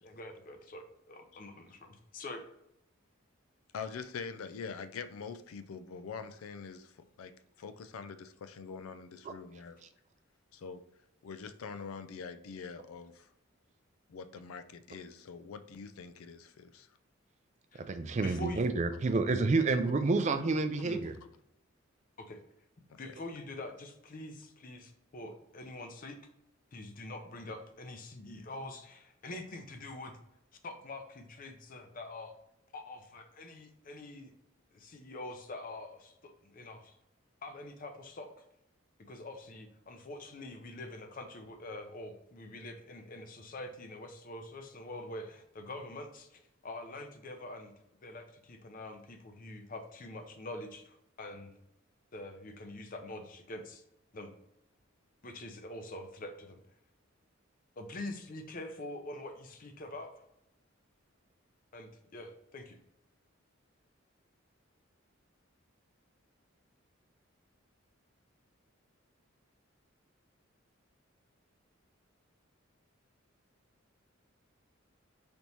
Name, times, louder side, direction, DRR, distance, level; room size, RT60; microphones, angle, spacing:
voice 1, 0.0-2.4 17.7-17.8 18.2-18.6 20.8-21.0 22.2-22.4 23.0-26.2 26.7-30.2 30.6-32.3 32.7-34.3 34.7-37.0 37.4-38.3 39.0-47.7 48.0-51.5 52.1-53.8 54.1-54.3 55.2-56.6 57.8-60.1 61.7-62.8, left 2 dB, 40° left, 5 dB, 0.5 m, -45 dB
voice 2, 3.7-7.3 7.6-9.8 10.5-10.8 11.2-13.3 14.1-16.9 22.9-23.0, left 5 dB, 90° left, 11 dB, 0.4 m, -44 dB
voice 3, 17.7-21.1, right 3 dB, 35° right, 9 dB, 0.3 m, -29 dB
3.4 x 3.0 x 4.0 m, 0.81 s
head